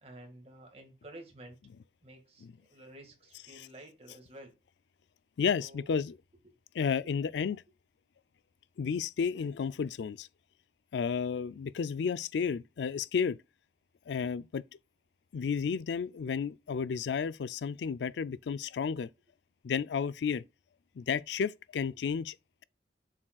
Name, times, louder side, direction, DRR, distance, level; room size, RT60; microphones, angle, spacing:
voice 1, 0.0-1.6 2.0-2.5 2.7-4.5 5.6-5.9, right 1 dB, 35° right, 1.8 m, -51 dB
voice 2, 5.4-6.2 6.7-7.6 8.8-10.3 10.9-13.4 14.1-14.6 15.3-19.1 19.6-20.4 21.0-22.4, left 6 dB, 75° left, 0.4 m, -32 dB
7.3 x 6.4 x 2.3 m
head